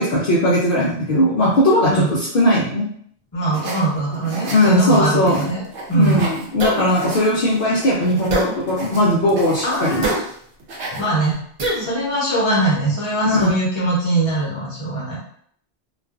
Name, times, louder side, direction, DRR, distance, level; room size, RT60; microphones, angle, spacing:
voice 1, 0.0-2.9 4.5-5.4 5.9-10.1 10.9-11.0 13.3-13.5, left 1 dB, 60° left, -6 dB, 0.7 m, -18 dB
voice 2, 3.3-5.6 5.9-6.2 9.6-10.2 11.0-11.4 11.8-15.2, right 2 dB, 30° left, -6 dB, 0.8 m, -21 dB
sound 1, 3.5-6.5 6.8-10.3 10.6-11.3, right 2 dB, 90° right, 0.9 m, -33 dB
sound 2, 6.6-6.9 8.3-8.5 10.0-10.2 11.6-11.9, right 2 dB, 50° right, 0.4 m, -21 dB
2.4 x 2.3 x 2.3 m, 0.63 s
omnidirectional pair, 1.1 m